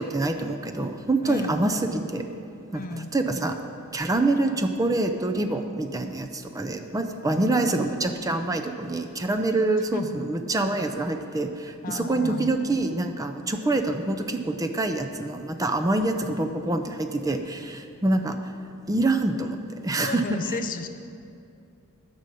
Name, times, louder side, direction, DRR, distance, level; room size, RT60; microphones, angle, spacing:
voice 1, 0.0-2.2 2.7-3.6 3.9-18.5 18.9-20.6, right 2 dB, 15° right, 6 dB, 0.5 m, -26 dB
voice 2, 1.2-1.6 2.7-3.2 7.3-7.8 9.9-10.2 11.8-12.5 20.0-20.9, left 3 dB, 40° left, 8 dB, 0.5 m, -33 dB
12.5 x 5.2 x 6.9 m, 2.5 s
head